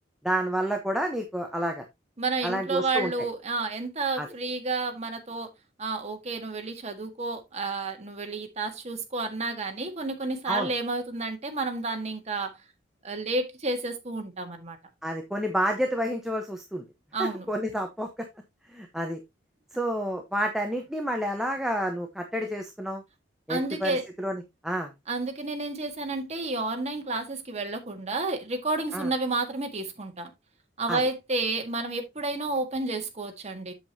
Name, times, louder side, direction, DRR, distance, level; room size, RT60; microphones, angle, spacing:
voice 1, 0.2-1.8 2.4-3.1 4.2-4.3 10.5-10.7 15.0-16.8 17.2-18.1 18.7-19.2 19.7-23.0 23.5-24.9 28.9-29.1 30.9-31.0, equal, 5° right, 1.1 m, -29 dB
voice 2, 2.2-5.5 5.8-12.5 13.0-14.8 17.1-17.5 23.5-24.0 25.1-30.3 30.8-33.7, right 3 dB, 35° right, 1.7 m, -30 dB
7.9 x 7.6 x 2.8 m
head